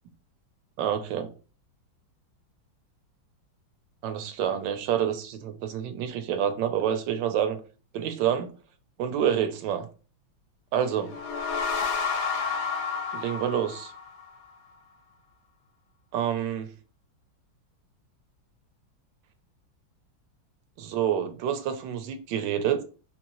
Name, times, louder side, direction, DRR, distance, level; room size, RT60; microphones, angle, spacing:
voice 1, 0.8-1.3 4.0-7.6 7.9-8.5 9.0-9.9 10.7-11.1 13.1-13.9 16.1-16.7 20.8-22.8, right 9 dB, 75° right, 1.2 m, -28 dB
sound 1, 10.9-14.5, left 5 dB, 70° left, 1.0 m, -30 dB
4.0 x 2.7 x 2.9 m
omnidirectional pair, 2.2 m